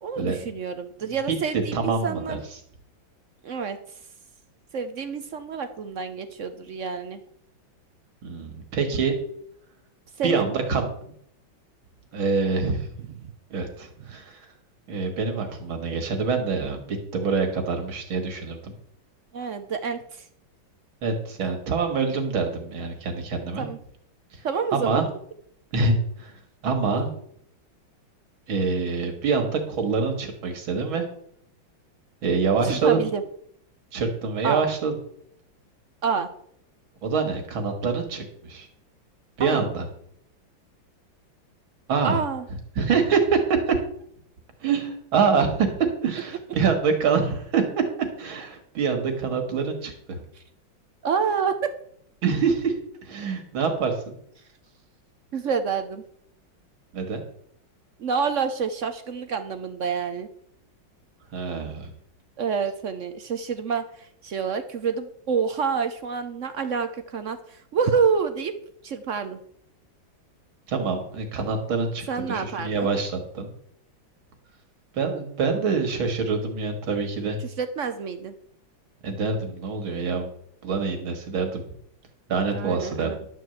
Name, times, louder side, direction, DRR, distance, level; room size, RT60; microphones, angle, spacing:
voice 1, 0.0-2.4 3.4-3.8 4.7-7.2 10.2-10.4 19.3-20.3 23.6-23.8 24.4-25.0 32.6-33.2 34.4-34.6 36.0-36.3 39.4-39.6 42.0-42.4 50.4-50.5 51.0-51.7 55.3-56.0 58.0-60.3 62.4-68.5 68.8-69.4 72.1-72.9 77.4-78.3 82.5-83.2, right 6 dB, 65° right, 9 dB, 0.7 m, -28 dB
voice 2, 1.7-2.4 8.2-9.2 10.2-10.9 12.1-12.9 13.5-14.4 14.9-18.7 21.0-23.7 24.7-25.1 25.7-26.3 26.6-27.1 28.5-31.1 32.2-33.0 33.9-34.9 37.0-38.7 39.4-39.9 41.9-42.2 42.8-43.8 44.6-47.6 48.2-50.2 52.2-52.7 53.0-54.0 56.9-57.2 61.3-61.9 70.7-73.5 74.9-77.4 79.0-80.3 80.6-81.6 82.3-83.1, right 5 dB, 85° right, 5 dB, 2.6 m, -25 dB
11.5 x 4.7 x 7.9 m, 0.69 s
omnidirectional pair, 2.2 m